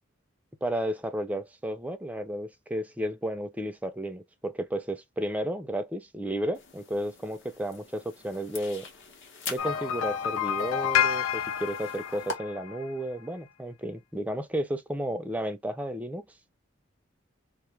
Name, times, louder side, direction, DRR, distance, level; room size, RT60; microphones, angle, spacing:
voice 1, 0.6-8.9 9.5-16.3, right 1 dB, 10° right, 0.4 m, -33 dB
sound 1, 6.5-12.4, left 4 dB, 65° left, 0.9 m, -44 dB
sound 2, 9.6-12.9, left 9 dB, 80° left, 0.4 m, -29 dB
2.5 x 2.3 x 3.2 m
head